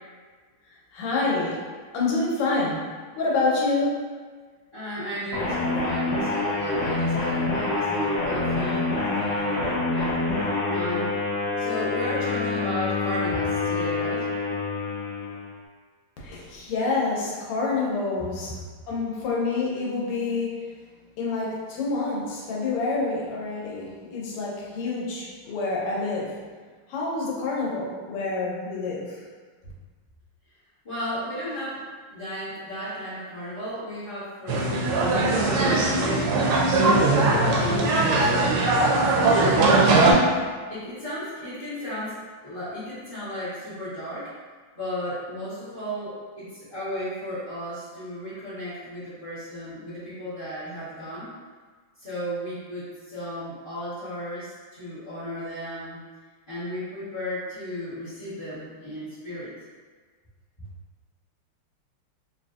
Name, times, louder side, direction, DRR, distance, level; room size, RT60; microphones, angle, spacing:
voice 1, 0.9-1.7 1.9-4.1 16.2-18.5 18.9-20.6 21.2-26.4 26.9-29.2, left 3 dB, 90° left, -5 dB, 1.7 m, -27 dB
voice 2, 4.7-10.2 10.7-14.2 30.8-36.6 37.6-39.5 39.7-42.1 42.4-44.3 44.7-51.3 52.0-56.0 56.5-59.5, equal, 30° left, -15 dB, 1.1 m, -34 dB
sound 1, 5.3-15.6, left 3 dB, 70° left, 1.0 m, -26 dB
sound 2, 34.5-40.1, right 2 dB, 80° right, 1.4 m, -20 dB
3.7 x 2.5 x 2.3 m, 1.5 s
omnidirectional pair, 2.4 m